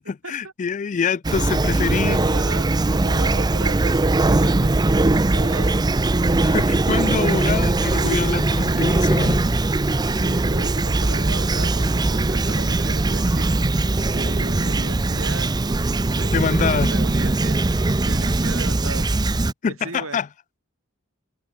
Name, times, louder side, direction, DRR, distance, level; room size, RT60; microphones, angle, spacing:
voice 1, 0.0-2.2 6.4-9.4 16.3-16.9 19.6-20.3, left 6 dB, 35° left, 0.4 m, -25 dB
Fowl / Chirp tweet, 1.2-19.5, right 2 dB, 20° right, 0.5 m, -20 dB
voice 2, 1.8-4.7 5.3-5.9 8.7-8.9 10.0-13.5 14.1-15.5 16.1-16.4 16.8-17.5 18.0-19.1 19.7-20.2, right 3 dB, 80° right, 4.4 m, -36 dB
head